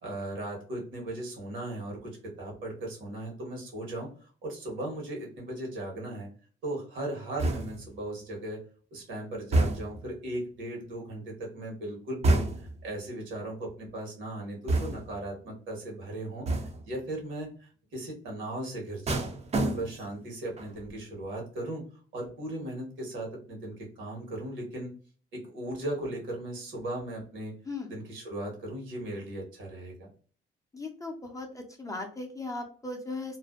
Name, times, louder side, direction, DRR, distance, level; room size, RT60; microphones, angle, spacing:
voice 1, 0.0-4.1 4.4-6.3 6.6-8.6 8.9-16.4 16.8-19.3 19.6-21.8 22.1-24.9 25.3-27.5 27.9-30.1, right 1 dB, 75° right, -1 dB, 1.2 m, -37 dB
sound 1, 7.4-8.0 9.5-10.1 12.2-12.8 14.7-15.2 16.5-16.9 19.1-20.2 20.6-20.9, right 2 dB, 35° right, 0.5 m, -28 dB
voice 2, 30.7-33.4, left 3 dB, 15° left, 2 dB, 0.5 m, -37 dB
2.5 x 2.1 x 2.3 m, 0.42 s
cardioid pair, 90°, 20 cm